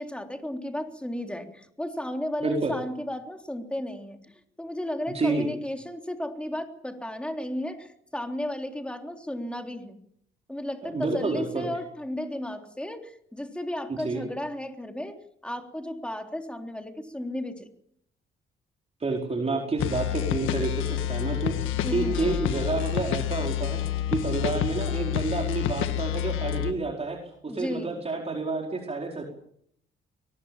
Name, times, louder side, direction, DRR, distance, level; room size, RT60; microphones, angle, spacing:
voice 1, 0.0-4.2 4.6-10.0 10.5-17.7 21.8-22.4 27.5-27.9, left 1 dB, 5° left, 4 dB, 3.5 m, -34 dB
voice 2, 2.4-2.7 5.1-5.5 10.8-11.7 13.9-14.2 19.0-29.2, right 3 dB, 30° right, 1 dB, 4.7 m, -29 dB
sound 1, 19.8-26.7, left 11 dB, 90° left, 1.6 m, -28 dB
23.0 x 20.0 x 7.3 m, 0.70 s
cardioid pair, 90°, 20 cm